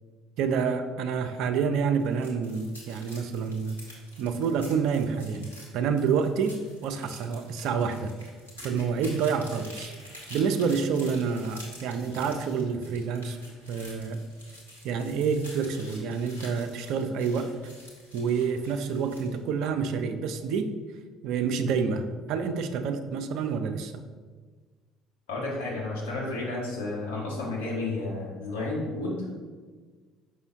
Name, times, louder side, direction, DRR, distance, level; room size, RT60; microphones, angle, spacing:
voice 1, 0.4-3.8 4.2-8.1 8.6-9.9 10.3-13.4 13.7-14.2 14.8-17.5 18.1-20.7 21.2-23.9, right 6 dB, 55° right, 9 dB, 0.4 m, -28 dB
sound 1, 2.0-19.4, left 1 dB, 85° left, 1.2 m, -48 dB
voice 2, 25.3-29.4, left 2 dB, 65° left, -5 dB, 1.7 m, -32 dB
6.1 x 5.3 x 3.0 m, 1.5 s
figure-of-eight pair, 55°, 0 cm